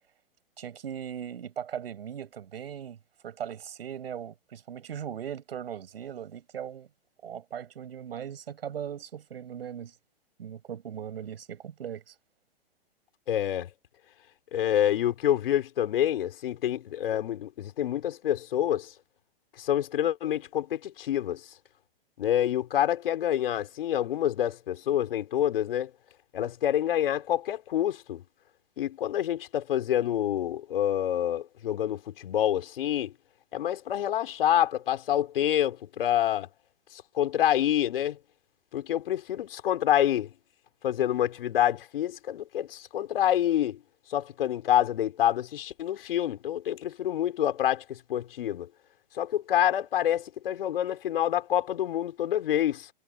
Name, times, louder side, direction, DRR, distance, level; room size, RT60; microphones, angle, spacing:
voice 1, 0.6-3.0 3.2-6.9 7.2-9.9 10.4-12.1, right 9 dB, 75° right, 6.4 m, -39 dB
voice 2, 13.3-13.7 14.5-18.9 19.6-21.4 22.2-25.9 26.3-28.2 28.8-33.1 33.5-36.5 36.9-38.2 38.7-40.3 40.8-43.8 44.1-48.7 49.1-52.9, left 11 dB, 65° left, 5.3 m, -27 dB
hypercardioid pair, 125°, 30 cm